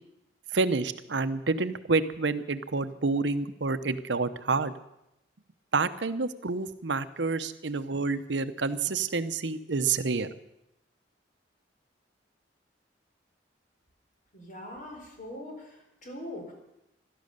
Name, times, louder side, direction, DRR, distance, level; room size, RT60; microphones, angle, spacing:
voice 1, 0.5-4.7 5.7-10.3, right 4 dB, 80° right, 12 dB, 0.8 m, -28 dB
voice 2, 14.3-16.5, left 1 dB, 45° left, 2 dB, 4.4 m, -42 dB
16.0 x 12.5 x 6.6 m, 0.85 s
head